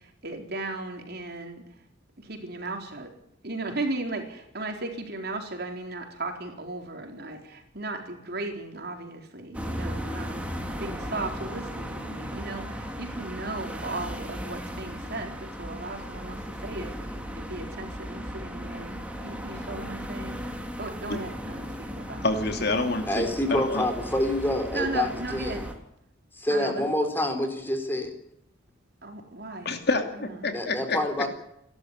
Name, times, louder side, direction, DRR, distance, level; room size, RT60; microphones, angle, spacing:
voice 1, 0.2-1.6 2.2-3.1 3.4-20.3 20.8-22.2 24.7-25.7 26.5-26.9 29.0-29.7 30.4-30.5, right 2 dB, 55° right, 3 dB, 4.3 m, -36 dB
sound 1, 9.5-25.7, equal, 5° right, 3.1 m, -36 dB
voice 2, 22.2-23.9 29.6-31.0, left 2 dB, 55° left, 6 dB, 2.7 m, -28 dB
voice 3, 23.1-25.6 26.4-28.1 30.5-31.3, left 1 dB, 10° left, 6 dB, 3.9 m, -27 dB
29.0 x 12.5 x 9.8 m, 0.78 s
head